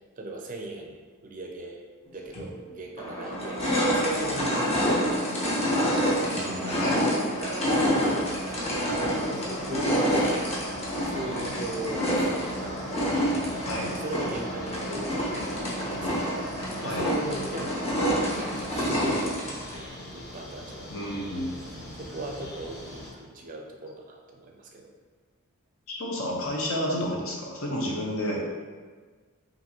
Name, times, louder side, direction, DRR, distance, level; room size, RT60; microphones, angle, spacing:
voice 1, 0.2-1.0 1.2-1.8 2.1-5.6 6.5-13.2 13.9-15.3 15.7-16.5 16.8-18.0 18.3-21.1 21.6-24.9, right 2 dB, 35° right, 1 dB, 0.5 m, -39 dB
sound 1, 2.3-2.4 3.0-19.8, equal, 30° left, 0.9 m, -27 dB
voice 2, 6.2-7.0 13.6-14.0 16.8-17.1 20.9-21.9 25.9-28.4, equal, 65° left, -2 dB, 0.8 m, -31 dB
sound 2, 7.3-23.1, left 1 dB, 45° left, 1.2 m, -43 dB
5.8 x 2.6 x 2.9 m, 1.5 s
head